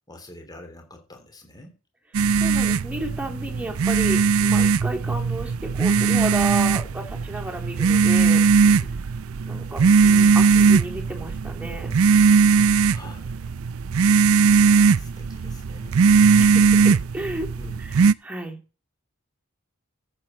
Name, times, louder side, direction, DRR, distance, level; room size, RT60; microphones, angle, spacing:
voice 1, 0.1-1.8 8.6-9.1 12.9-13.5 14.6-16.1 17.6-17.9, left 2 dB, 20° left, 4 dB, 3.1 m, -45 dB
sound 1, 2.1-18.1, right 5 dB, 70° right, 0.5 m, -19 dB
voice 2, 2.3-8.4 9.4-12.0 16.4-17.5 18.2-18.6, right 2 dB, 5° right, 1 dB, 3.0 m, -32 dB
14.0 x 7.6 x 4.3 m, 0.34 s
head